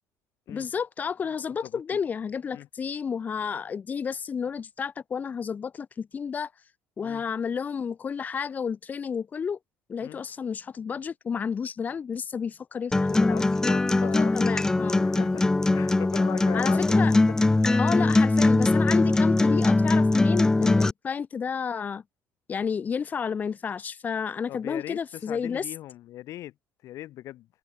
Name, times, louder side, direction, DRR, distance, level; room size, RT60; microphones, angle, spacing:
voice 1, 0.5-6.5 7.0-9.6 9.9-13.4 14.1-15.0 16.5-17.2 17.8-22.0 22.5-25.7, left 6 dB, 25° left, 7.4 m, -31 dB
Acoustic guitar, 12.9-20.9, left 2 dB, 10° left, 2.2 m, -21 dB
voice 2, 13.3-14.6 14.9-17.2 17.7-17.8 24.5-26.5 26.8-27.5, left 14 dB, 55° left, 4.6 m, -39 dB
cardioid pair, 160°, 6 cm